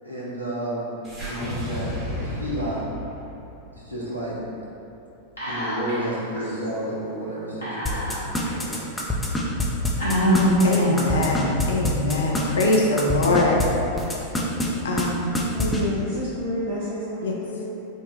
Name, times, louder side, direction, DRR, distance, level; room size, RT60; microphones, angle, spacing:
voice 1, 0.0-2.9 3.7-4.4 5.4-8.9, right 1 dB, 85° right, -7 dB, 0.6 m, -31 dB
sound 1, 1.0-5.4, left 1 dB, 25° right, 1.0 m, -34 dB
Whispering, 5.4-6.1 6.4-6.5 7.6-8.5 9.1-9.2 10.0-11.2, equal, 80° left, 1.3 m, -23 dB
sound 2, 7.9-13.7 14.0-14.7 15.0-15.1 15.3-15.8, left 2 dB, 5° left, 0.4 m, -25 dB
voice 2, 10.6-13.6 14.8-15.3 17.2-17.3, left 2 dB, 65° left, -1 dB, 0.5 m, -22 dB
voice 3, 15.5-17.7, left 1 dB, 55° right, -12 dB, 0.9 m, -29 dB
3.5 x 2.0 x 3.7 m, 2.9 s
figure-of-eight pair, 90°, 0 cm